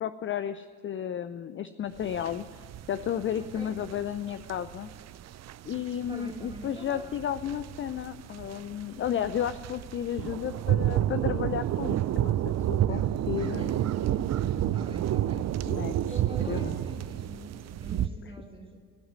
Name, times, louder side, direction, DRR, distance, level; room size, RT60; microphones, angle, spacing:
voice 1, 0.0-4.9 5.6-12.3 12.7-13.7 15.7-16.2 16.5-16.8, left 9 dB, 30° left, 12 dB, 0.5 m, -33 dB
sound 1, 2.0-18.1, right 11 dB, 35° right, 0.5 m, -30 dB
voice 2, 3.4-3.8 6.1-7.2 13.3-14.3 14.7-15.5 16.1-18.8, right 1 dB, 10° right, 2 dB, 2.5 m, -45 dB
16.5 x 7.9 x 9.4 m, 2.1 s
hypercardioid pair, 65°, 44 cm